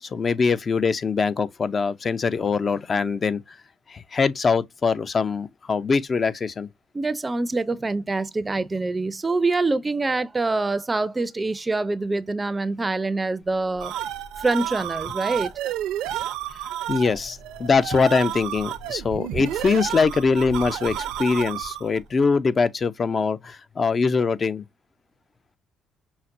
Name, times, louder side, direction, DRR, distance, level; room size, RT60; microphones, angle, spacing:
voice 1, 0.0-3.6 3.9-6.7 16.9-24.6, left 5 dB, 40° left, 0.5 m, -23 dB
voice 2, 6.9-13.9 14.4-15.5, right 3 dB, 25° right, 0.5 m, -25 dB
sound 1, 13.5-22.0, right 11 dB, 80° right, 0.6 m, -31 dB
5.7 x 2.1 x 2.6 m
supercardioid pair, 70°, 0 cm